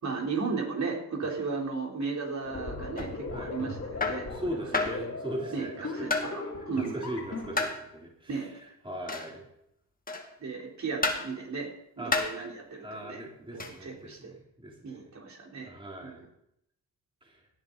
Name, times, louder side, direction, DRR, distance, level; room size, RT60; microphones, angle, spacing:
voice 1, 0.0-4.3 4.7-4.9 5.5-7.1 8.3-8.5 10.4-11.7 12.0-13.2 13.5-14.3 14.8-15.7 16.0-16.1, right 4 dB, 45° right, -1 dB, 3.7 m, -35 dB
sound 1, 2.4-7.6, left 3 dB, 35° left, 3.2 m, -38 dB
sound 2, 3.0-3.2 4.0-4.3 4.7-5.0 6.1-6.4 7.6-7.8 9.1-9.4 10.1-10.4 11.0-11.3 12.1-12.4 13.6-13.8, left 3 dB, 20° left, 1.9 m, -30 dB
voice 2, 4.3-6.2 6.7-8.5 8.8-9.4 12.0-12.2 12.8-15.2 15.6-16.2 17.2-17.4, equal, 15° right, -1 dB, 3.2 m, -39 dB
17.5 x 10.0 x 4.0 m, 0.77 s
cardioid pair, 90°, 40 cm